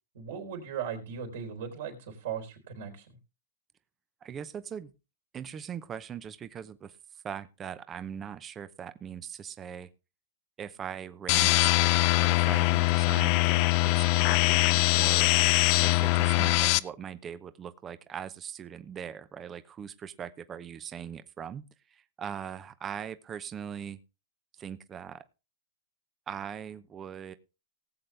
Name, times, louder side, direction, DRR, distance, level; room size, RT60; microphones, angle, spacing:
voice 1, 0.1-3.2, right 7 dB, 70° right, 3 dB, 4.0 m, -38 dB
voice 2, 4.2-4.9 5.3-9.9 10.6-15.3 15.8-21.6 21.9-24.0 24.6-25.2 26.3-27.3, right 8 dB, 25° right, 13 dB, 0.8 m, -40 dB
sound 1, 11.3-16.8, left 20 dB, 45° left, 0.5 m, -23 dB
18.5 x 7.8 x 3.4 m, 0.29 s
hypercardioid pair, 125°, 0 cm